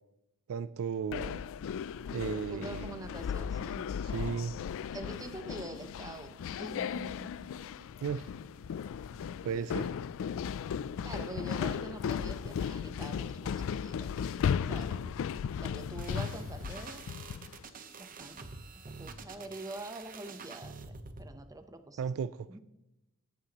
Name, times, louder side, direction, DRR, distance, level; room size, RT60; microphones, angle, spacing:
voice 1, 0.5-1.4 2.1-3.1 4.0-4.5 8.0-8.3 9.4-9.9 22.0-22.5, right 6 dB, 65° right, 15 dB, 0.3 m, -35 dB
sound 1, 1.1-17.6, left 7 dB, 60° left, 0.3 m, -36 dB
voice 2, 2.5-3.9 4.9-7.5 7.8-7.9 9.1-9.7 11.0-14.3 14.7-15.1 15.6-17.0 18.0-18.4 19.0-22.0 22.5-22.6, right 2 dB, 15° right, 8 dB, 0.7 m, -45 dB
sound 2, 16.0-21.3, right 4 dB, 40° right, 0.9 m, -47 dB
17.0 x 8.7 x 2.9 m, 0.93 s
head